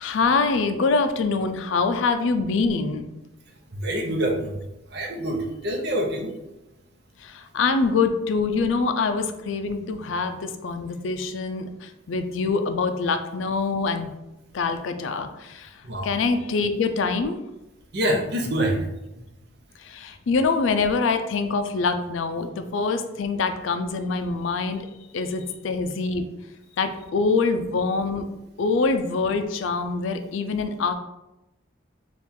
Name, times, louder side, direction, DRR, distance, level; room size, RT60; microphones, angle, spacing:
voice 1, 0.0-3.1 7.2-14.1 14.5-17.4 19.8-24.9 25.1-26.2 26.8-28.3 28.6-30.9, left 4 dB, 75° left, 8 dB, 0.4 m, -25 dB
voice 2, 3.7-4.5 4.9-6.3 15.8-16.1 17.9-18.9, right 1 dB, 55° right, 1 dB, 0.7 m, -25 dB
4.3 x 2.4 x 3.6 m, 0.95 s
head